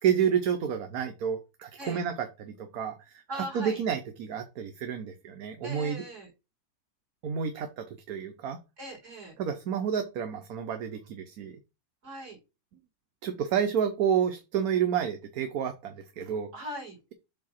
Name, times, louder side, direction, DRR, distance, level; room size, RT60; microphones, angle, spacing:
voice 1, 0.0-6.0 7.2-8.6 9.4-11.6 13.2-16.5, right 8 dB, 65° right, 7 dB, 1.2 m, -30 dB
voice 2, 3.3-3.8 5.6-6.3 8.8-9.3 12.0-12.4 16.5-17.0, right 1 dB, 45° right, 0 dB, 3.6 m, -39 dB
7.5 x 2.9 x 5.6 m, 0.27 s
omnidirectional pair, 1.8 m